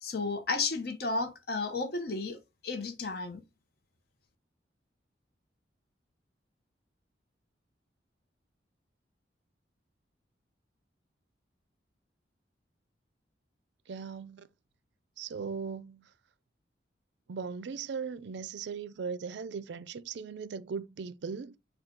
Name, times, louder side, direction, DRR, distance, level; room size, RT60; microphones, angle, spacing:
voice 1, 0.0-3.4, left 3 dB, 55° left, 0.8 m, -33 dB
voice 2, 13.9-14.5 15.2-16.1 17.3-21.6, right 5 dB, 70° right, 0.4 m, -38 dB
5.9 x 2.3 x 3.7 m
head